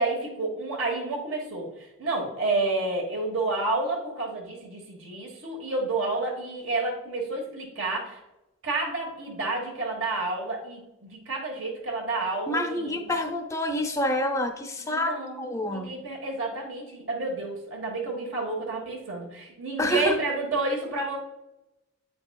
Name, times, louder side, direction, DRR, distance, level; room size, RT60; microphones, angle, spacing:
voice 1, 0.0-8.2 8.6-13.1 14.9-21.2, right 2 dB, 75° right, -1 dB, 1.4 m, -30 dB
voice 2, 12.5-16.0 19.8-20.2, left 1 dB, 15° left, 5 dB, 0.5 m, -27 dB
8.2 x 5.1 x 2.3 m, 0.94 s
head